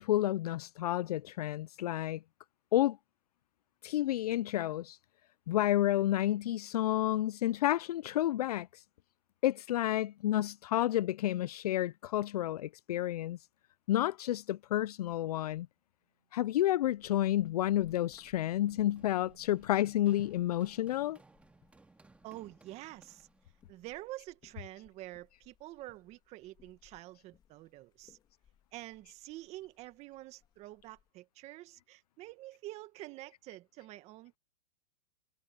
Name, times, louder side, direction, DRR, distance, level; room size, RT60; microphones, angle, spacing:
voice 1, 0.0-2.2 2.7-3.0 3.8-5.0 5.5-8.8 9.4-13.4 13.9-15.7 16.3-21.2, left 13 dB, 70° left, 0.5 m, -30 dB
sound 1, 16.1-20.0, right 9 dB, 65° right, 3.9 m, -67 dB
sound 2, 16.8-31.1, left 9 dB, 20° left, 2.4 m, -66 dB
Run, 17.3-23.7, right 3 dB, 5° right, 2.4 m, -63 dB
voice 2, 22.2-23.3 23.7-28.2 28.7-34.4, right 17 dB, 35° right, 1.9 m, -47 dB
hypercardioid pair, 140°, 20 cm